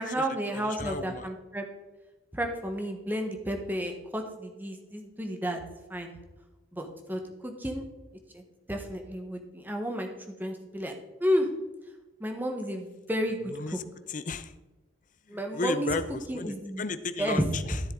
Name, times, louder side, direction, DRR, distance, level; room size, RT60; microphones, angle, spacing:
voice 1, 0.0-1.7 2.3-5.6 5.9-6.1 6.7-7.8 8.3-8.4 8.7-10.1 10.4-10.9 11.2-11.5 12.2-13.8 15.3-15.9 16.3-16.8 17.2-17.4, equal, 10° right, 3 dB, 1.2 m, -31 dB
voice 2, 0.5-1.3 13.5-13.8 14.1-14.5 15.3-17.8, left 4 dB, 40° left, 12 dB, 0.6 m, -34 dB
13.0 x 7.5 x 3.8 m, 1.1 s
head